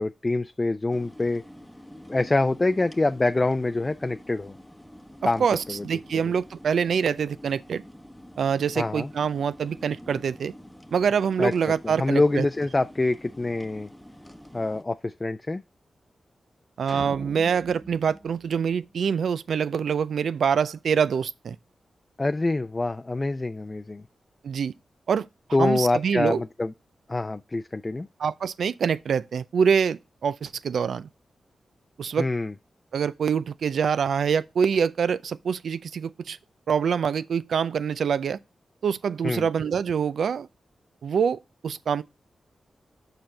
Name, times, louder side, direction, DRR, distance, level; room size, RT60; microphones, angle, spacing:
voice 1, 0.0-1.4 2.1-4.5 5.2-5.8 8.8-9.1 11.4-11.5 11.8-13.9 14.5-15.6 22.2-24.0 25.5-26.7 27.1-28.1 32.2-32.5 39.2-39.5, left 2 dB, 30° left, 0.5 m, -25 dB
sound 1, 0.9-14.8, equal, 5° left, 0.9 m, -47 dB
voice 2, 5.4-7.8 8.4-10.5 10.9-12.5 16.8-21.6 24.4-24.7 25.1-25.3 25.6-26.4 28.2-31.1 32.0-32.3 32.9-36.4 36.7-38.4 38.8-40.5 41.0-42.0, right 7 dB, 80° right, 0.4 m, -25 dB
sound 2, 16.9-19.4, right 2 dB, 20° right, 0.7 m, -43 dB
6.6 x 4.4 x 5.2 m
cardioid pair, 45°, 0 cm